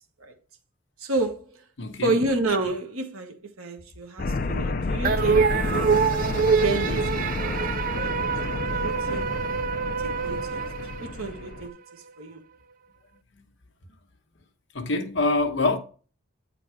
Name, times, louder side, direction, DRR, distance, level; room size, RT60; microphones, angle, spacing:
voice 1, 1.0-1.5 2.0-6.0 6.6-7.6 7.9-9.3 10.0-10.6 11.0-12.4, right 2 dB, 90° right, 1.2 m, -30 dB
voice 2, 1.8-2.2 14.7-15.8, left 3 dB, 60° left, 1.0 m, -25 dB
sound 1, 4.2-11.7, left 3 dB, 40° left, 0.5 m, -30 dB
sound 2, 5.0-11.6, right 6 dB, 40° right, 0.3 m, -25 dB
9.1 x 3.9 x 4.7 m
head